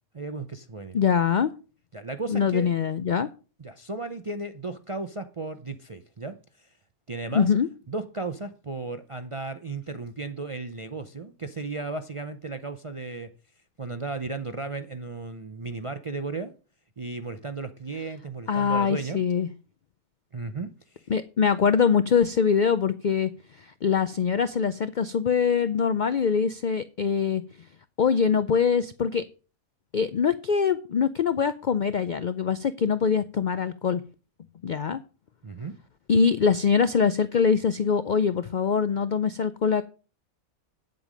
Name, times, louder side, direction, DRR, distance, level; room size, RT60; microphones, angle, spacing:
voice 1, 0.1-1.0 1.9-2.7 3.6-6.7 7.1-7.5 7.9-13.3 13.8-16.5 17.0-19.2 20.3-21.0 35.4-35.8, right 3 dB, 45° right, 0.4 m, -35 dB
voice 2, 0.9-1.5 2.3-3.3 7.3-7.7 18.5-19.5 21.1-23.3 23.8-27.4 28.0-29.2 29.9-34.0 34.6-35.0 36.1-39.8, left 6 dB, 70° left, 0.4 m, -23 dB
9.1 x 7.7 x 5.1 m
omnidirectional pair, 1.5 m